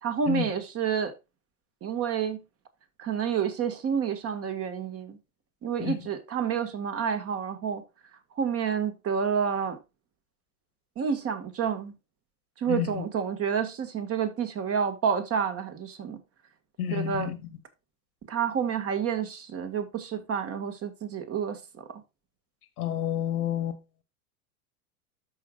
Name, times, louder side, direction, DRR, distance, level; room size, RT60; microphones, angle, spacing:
voice 1, 0.0-1.1 1.8-2.4 3.0-5.2 5.6-7.8 8.4-9.8 11.0-11.9 12.6-16.2 16.9-17.3 18.3-21.6, right 7 dB, 30° right, 1.8 m, -29 dB
voice 2, 12.7-13.0 16.8-17.4 22.8-23.8, left 11 dB, 85° left, 1.6 m, -30 dB
13.0 x 4.9 x 2.4 m
hypercardioid pair, 115°, 43 cm